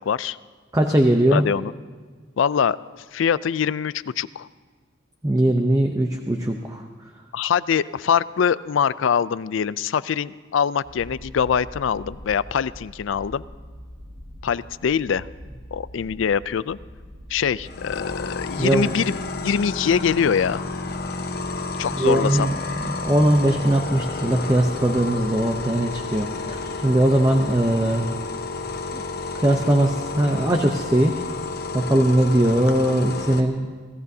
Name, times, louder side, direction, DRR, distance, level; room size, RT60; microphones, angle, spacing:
voice 1, 0.1-0.4 1.3-1.7 2.4-2.8 3.1-4.5 7.3-13.4 14.4-15.3 15.7-16.8 17.3-20.6 21.8-22.5, left 7 dB, 75° left, 18 dB, 0.4 m, -23 dB
voice 2, 0.7-1.4 5.2-6.8 18.6-18.9 22.0-22.5 22.8-28.1 28.9-29.0 29.3-31.1 31.7-33.7, right 1 dB, 15° right, 3 dB, 0.7 m, -20 dB
sound 1, 10.8-30.1, equal, 65° right, 5.0 m, -45 dB
sound 2, 17.6-33.4, left 3 dB, 50° left, 1.0 m, -31 dB
25.5 x 16.5 x 2.8 m, 1.5 s
head